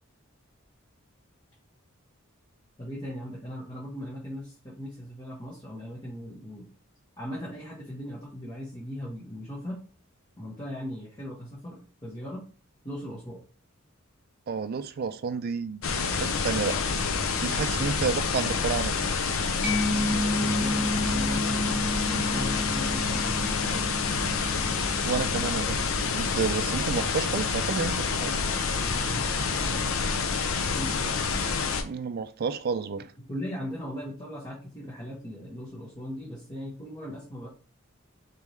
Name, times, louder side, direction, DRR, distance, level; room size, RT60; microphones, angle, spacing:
voice 1, 2.8-6.7 7.2-9.8 10.4-12.4 12.8-13.4 17.7-18.0 19.9-23.9 28.8-29.9 30.8-31.2 33.2-37.5, equal, 20° left, 1.2 m, -38 dB
voice 2, 14.5-15.8 16.1-16.8 17.4-18.9 25.0-25.8 26.1-28.4 31.8-33.1, right 5 dB, 45° right, 0.3 m, -30 dB
sound 1, 15.8-31.8, left 5 dB, 70° left, 0.6 m, -28 dB
Mallet percussion, 19.6-27.0, left 1 dB, ahead, 0.8 m, -32 dB
4.1 x 3.6 x 3.1 m
head